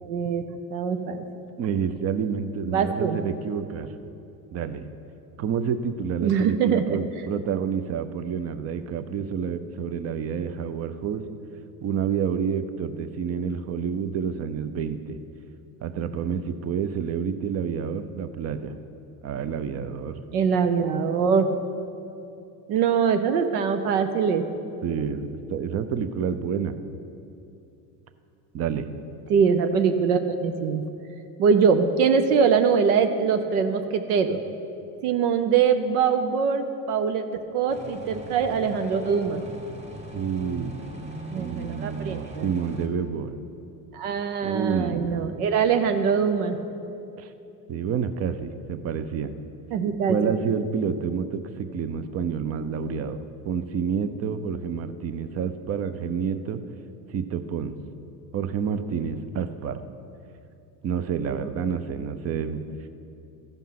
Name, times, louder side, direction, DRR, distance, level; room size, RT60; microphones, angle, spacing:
voice 1, 0.0-0.4 0.7-1.2 2.7-3.2 6.2-7.0 20.3-21.5 22.7-24.4 29.3-30.8 31.4-34.4 35.0-37.2 37.5-39.4 41.3-42.5 43.9-46.6 49.7-50.2 61.3-61.4, right 6 dB, 75° right, 8 dB, 0.9 m, -23 dB
voice 2, 1.6-3.9 4.5-4.9 5.4-11.2 11.8-15.2 15.8-18.7 19.2-20.2 24.8-26.8 28.5-28.9 40.1-40.7 41.3-43.4 44.4-45.3 47.2-47.3 47.7-49.4 50.1-56.6 57.1-57.8 58.3-59.8 60.8-62.6, right 7 dB, 35° right, 11 dB, 0.6 m, -29 dB
sound 1, 37.7-42.9, right 1 dB, 15° right, 1.4 m, -40 dB
14.0 x 5.4 x 5.8 m, 2.7 s
supercardioid pair, 100°, 46 cm